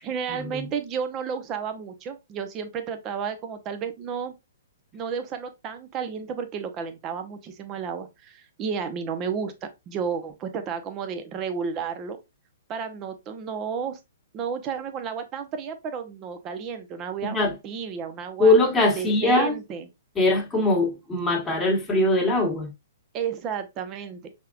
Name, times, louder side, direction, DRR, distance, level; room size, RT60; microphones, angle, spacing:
voice 1, 0.0-4.3 4.9-12.2 12.7-14.0 14.3-17.4 17.6-18.5 18.9-19.9 23.1-24.2, right 6 dB, 30° right, 0.8 m, -32 dB
voice 2, 17.2-17.5 18.4-19.5 20.1-22.7, left 2 dB, 10° left, 1.4 m, -21 dB
5.5 x 3.6 x 2.5 m
hypercardioid pair, 125°, 0 cm